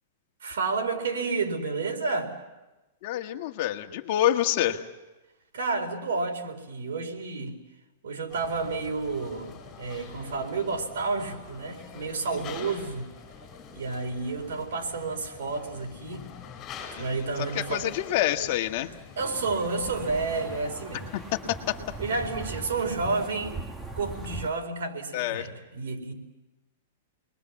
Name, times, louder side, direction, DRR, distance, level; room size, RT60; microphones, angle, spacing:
voice 1, 0.4-2.3 5.5-7.5 8.0-13.1 13.7-16.3 17.0-17.9 19.2-21.1 22.0-23.6 24.0-26.1, right 4 dB, 80° right, 3 dB, 4.4 m, -30 dB
voice 2, 3.0-4.8 17.5-18.9 21.1-21.2 21.5-21.8 25.1-25.5, left 12 dB, 45° left, 5 dB, 1.6 m, -27 dB
sound 1, 8.3-22.6, left 6 dB, 25° left, 5.7 m, -46 dB
sound 2, 19.2-24.5, right 3 dB, 10° right, 1.3 m, -40 dB
28.5 x 21.5 x 7.3 m, 1.1 s
hypercardioid pair, 155°, 0 cm